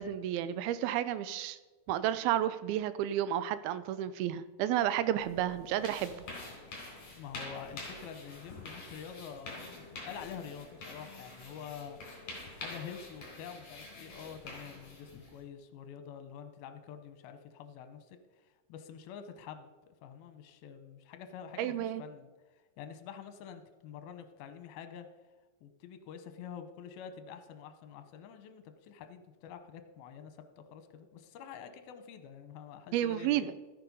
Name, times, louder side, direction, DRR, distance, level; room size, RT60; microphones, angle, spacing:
voice 1, 0.0-1.6 1.9-6.1 21.6-22.0 32.9-33.5, right 11 dB, 80° right, 14 dB, 2.4 m, -31 dB
sound 1, 5.2-15.4, left 2 dB, 40° left, 4.6 m, -47 dB
voice 2, 7.1-12.0 12.5-18.2 18.7-22.3 22.8-25.1 25.6-33.5, left 7 dB, 80° left, 8 dB, 2.7 m, -47 dB
13.5 x 9.8 x 5.3 m, 1.3 s
omnidirectional pair, 4.4 m